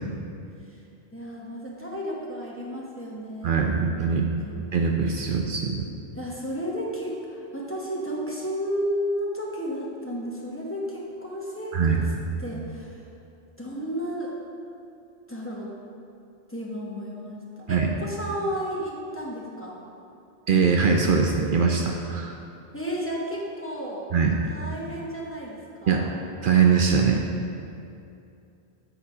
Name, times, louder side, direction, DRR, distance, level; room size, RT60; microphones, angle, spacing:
voice 1, 1.1-4.6 6.1-12.1 12.4-13.0 13.6-14.3 15.3-15.7 16.5-19.8 22.7-24.1 24.5-26.1, equal, 15° left, -5 dB, 1.0 m, -33 dB
voice 2, 3.4-4.3 4.7-5.9 11.7-12.0 17.7-17.9 20.5-22.3 24.1-24.4 25.9-26.0 26.4-27.2, right 5 dB, 65° right, 1 dB, 0.7 m, -22 dB
8.5 x 4.1 x 4.9 m, 2.6 s
omnidirectional pair, 1.0 m